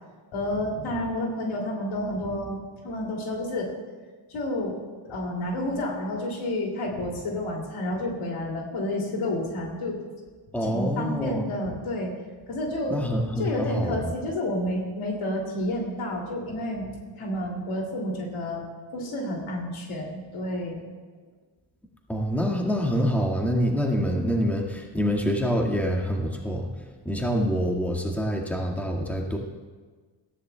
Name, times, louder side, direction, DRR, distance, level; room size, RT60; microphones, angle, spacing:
voice 1, 0.3-3.7 4.3-4.8 5.0-10.0 10.6-12.1 12.5-13.0 13.4-18.6 18.9-20.8, left 1 dB, 80° left, 0 dB, 2.8 m, -30 dB
voice 2, 10.5-11.4 12.9-14.1 22.1-26.7 27.0-29.4, equal, 5° left, -1 dB, 1.8 m, -26 dB
18.0 x 14.0 x 2.3 m, 1.4 s
cardioid pair, 75°, 48 cm